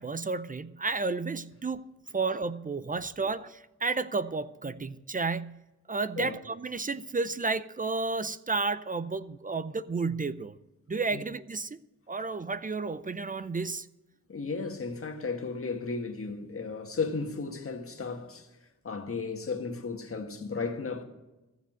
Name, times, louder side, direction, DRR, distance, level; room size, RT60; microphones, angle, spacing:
voice 1, 0.0-1.8 2.1-5.6 5.9-10.6 10.9-11.8 12.1-13.9, right 3 dB, 25° right, 0.5 m, -32 dB
voice 2, 14.3-18.5 18.8-21.0, left 4 dB, 45° left, 1.6 m, -34 dB
14.5 x 6.9 x 7.5 m
wide cardioid pair, 110°, 31 cm